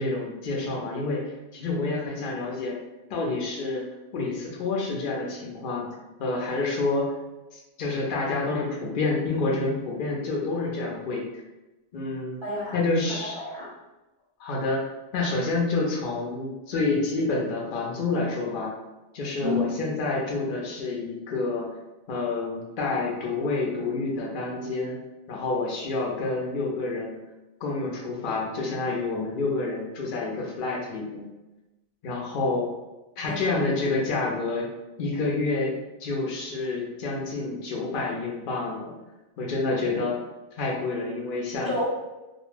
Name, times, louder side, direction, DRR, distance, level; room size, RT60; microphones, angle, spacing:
voice 1, 0.0-2.8 3.1-3.9 4.1-5.9 6.2-7.2 7.5-11.2 11.9-12.4 12.7-13.4 14.4-14.8 15.1-18.7 19.1-21.7 22.1-25.0 25.3-27.2 27.6-31.3 32.0-32.7 33.2-34.7 35.0-38.9 39.4-40.2 40.6-41.7, left 3 dB, 60° left, -2 dB, 0.6 m, -28 dB
voice 2, 12.4-12.8 13.1-13.7 19.4-19.7 33.2-33.5 41.7-41.9, left 2 dB, 50° right, -9 dB, 0.3 m, -30 dB
2.2 x 2.1 x 3.1 m, 1.0 s
omnidirectional pair, 1.2 m